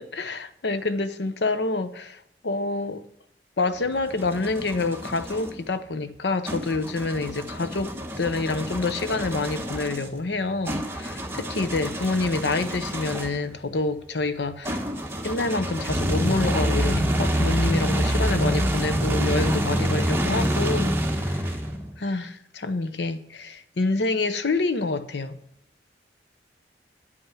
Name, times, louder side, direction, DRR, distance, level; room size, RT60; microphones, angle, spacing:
voice 1, 0.0-3.0 3.6-14.8 15.2-21.5 22.0-25.4, left 3 dB, 75° left, 0.8 m, -27 dB
sound 1, 3.7-5.5 6.4-13.5 14.6-21.9, equal, 15° right, 1.1 m, -27 dB
9.4 x 5.6 x 7.6 m
head